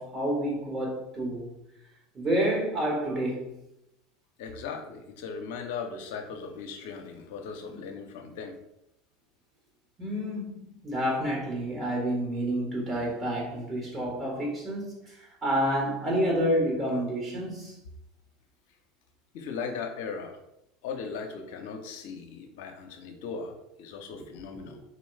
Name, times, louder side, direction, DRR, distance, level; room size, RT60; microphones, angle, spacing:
voice 1, 0.0-1.5 2.1-3.6 10.0-17.8, equal, 35° right, 1.4 m, -29 dB
voice 2, 4.4-8.6 19.3-20.4 20.8-24.8, left 5 dB, 65° left, 0.7 m, -38 dB
4.0 x 3.0 x 3.1 m
hypercardioid pair, 75°, 0 cm